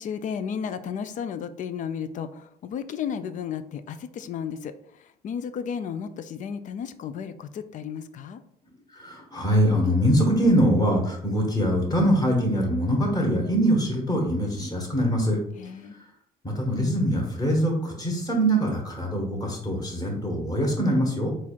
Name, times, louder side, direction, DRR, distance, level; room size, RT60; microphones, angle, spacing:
voice 1, 0.0-4.7 5.0-8.4 15.6-16.0, left 7 dB, 50° left, 12 dB, 0.4 m, -33 dB
voice 2, 8.9-15.4 16.4-21.3, equal, 20° left, -1 dB, 1.4 m, -23 dB
4.1 x 2.5 x 4.4 m, 0.73 s
cardioid pair, 110°, 17 cm